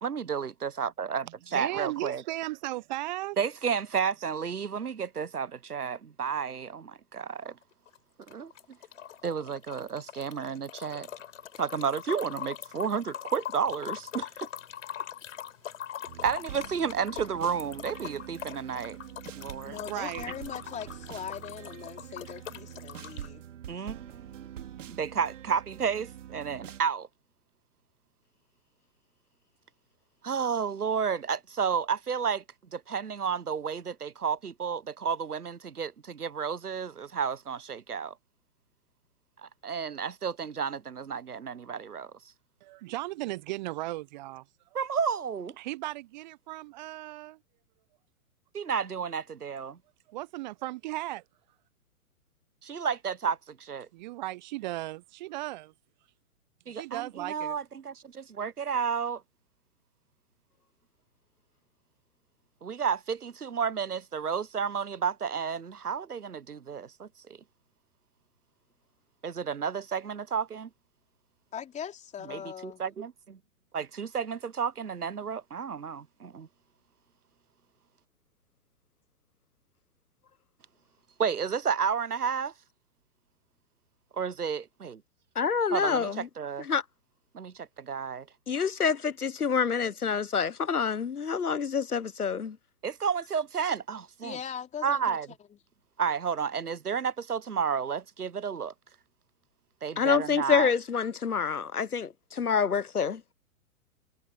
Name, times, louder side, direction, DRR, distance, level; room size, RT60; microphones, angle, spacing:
voice 1, 0.0-2.2 3.4-7.6 8.3-8.5 9.2-11.1 11.6-14.5 16.2-19.0 19.4-19.8 23.7-24.5 24.9-27.1 30.2-32.4 32.7-38.1 39.4-42.1 44.7-45.6 48.5-49.8 52.6-53.9 56.7-59.2 62.6-67.4 69.2-70.7 72.2-73.4 73.7-76.5 81.2-82.5 84.1-85.0 85.7-86.7 87.3-88.3 92.8-94.4 94.8-95.3 96.0-98.7 99.8-100.7, right 6 dB, 85° right, 1.0 m, -31 dB
voice 2, 1.5-3.4 19.7-20.2 42.6-44.4 45.6-47.4 50.1-51.2 53.9-55.7 56.7-57.6, right 18 dB, 30° right, 0.8 m, -36 dB
sound 1, 7.6-23.3, left 10 dB, 60° left, 5.0 m, -42 dB
sound 2, 16.1-26.8, right 11 dB, 55° right, 2.5 m, -45 dB
voice 3, 19.6-23.4 71.5-72.8 94.2-95.2, left 8 dB, 15° left, 3.8 m, -40 dB
voice 4, 85.4-86.3 86.7-86.8 88.5-92.6 100.0-103.2, left 6 dB, 85° left, 1.1 m, -27 dB
figure-of-eight pair, 115°, 44 cm